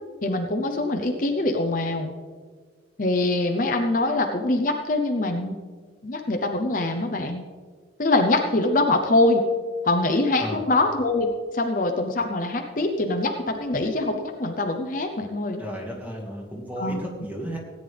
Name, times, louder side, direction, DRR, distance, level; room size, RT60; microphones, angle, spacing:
voice 1, 0.2-2.1 3.0-5.5 6.0-7.4 8.0-9.4 9.8-11.3 11.5-15.6 16.8-17.0, left 2 dB, 45° left, 4 dB, 0.8 m, -23 dB
voice 2, 15.6-17.6, equal, 10° right, -1 dB, 2.1 m, -33 dB
17.0 x 9.5 x 3.5 m, 1.5 s
head